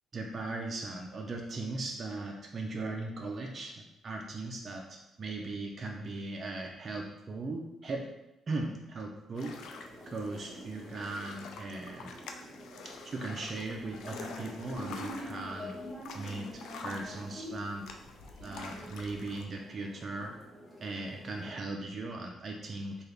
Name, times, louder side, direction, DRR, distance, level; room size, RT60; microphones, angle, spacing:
voice 1, 0.1-8.1 8.5-9.6 10.1-12.1 13.1-15.7 16.1-17.9 18.4-20.3 20.8-23.0, right 2 dB, 40° right, 1 dB, 0.4 m, -38 dB
sound 1, 9.4-19.4, left 4 dB, 80° left, 0.3 m, -48 dB
sound 2, 9.5-21.5, equal, ahead, 1.1 m, -47 dB
3.5 x 2.3 x 3.2 m, 0.93 s
cardioid pair, 90°, 0 cm